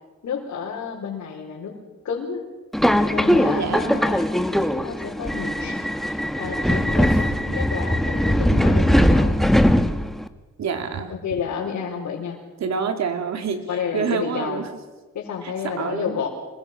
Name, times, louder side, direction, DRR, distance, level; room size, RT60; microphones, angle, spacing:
voice 1, 0.2-1.8 2.0-2.4 3.1-4.3 4.8-9.4 11.1-12.4 13.7-14.6 15.1-16.3, left 6 dB, 65° left, -3 dB, 4.7 m, -30 dB
Subway metro underground, 2.7-10.3, equal, ahead, 1.4 m, -20 dB
voice 2, 3.5-4.1 10.6-11.1 12.6-14.7 15.4-16.2, right 6 dB, 60° right, 6 dB, 3.1 m, -27 dB
26.5 x 21.5 x 6.1 m, 1.3 s
cardioid pair, 90°, 30 cm